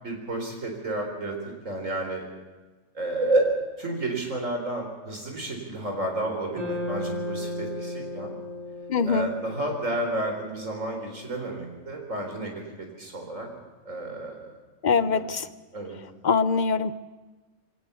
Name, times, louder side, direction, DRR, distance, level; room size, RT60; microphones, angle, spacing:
voice 1, 0.0-2.2 2.9-3.5 3.8-8.3 9.0-13.5 13.8-14.6 14.9-15.2 15.7-16.0, right 2 dB, 75° right, 3 dB, 4.6 m, -31 dB
sound 1, 6.5-10.9, left 2 dB, 30° right, 5.9 m, -35 dB
voice 2, 8.9-9.3 14.8-15.5 16.2-16.9, left 5 dB, 45° left, 14 dB, 0.7 m, -23 dB
22.0 x 18.5 x 7.0 m, 1.3 s
omnidirectional pair, 1.4 m